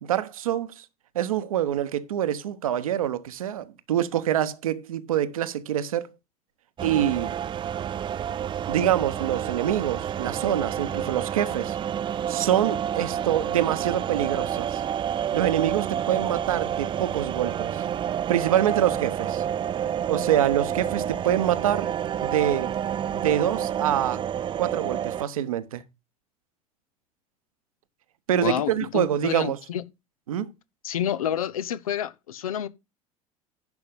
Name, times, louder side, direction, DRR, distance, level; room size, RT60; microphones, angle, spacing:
voice 1, 0.0-0.8 1.1-6.1 6.8-7.3 8.7-11.8 12.3-14.8 15.3-17.8 18.3-19.4 20.1-21.9 22.2-22.8 23.1-24.2 24.6-25.8 28.3-29.6 30.3-30.5, right 11 dB, 70° right, 0.9 m, -25 dB
sound 1, 6.8-25.2, right 9 dB, 25° right, 0.5 m, -29 dB
voice 2, 28.4-29.8 30.8-32.7, left 10 dB, 70° left, 0.7 m, -29 dB
10.5 x 5.3 x 5.3 m
figure-of-eight pair, 70°, 19 cm